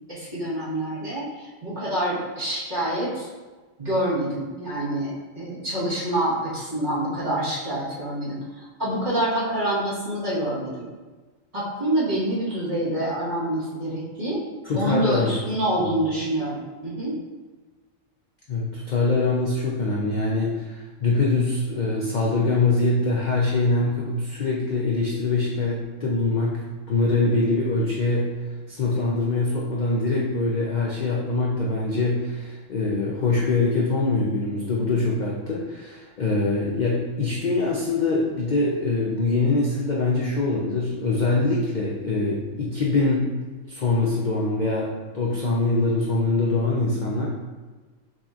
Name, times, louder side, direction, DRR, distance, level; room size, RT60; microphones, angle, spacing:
voice 1, 0.1-3.3 3.8-10.9 11.5-14.4 14.7-17.1, right 1 dB, 35° right, -9 dB, 1.6 m, -27 dB
voice 2, 14.7-15.3 15.8-15.9 18.5-26.6 26.9-28.3 28.7-43.3 43.7-47.3, left 3 dB, 50° left, -3 dB, 0.5 m, -23 dB
6.2 x 2.9 x 2.5 m, 1.3 s
omnidirectional pair, 1.4 m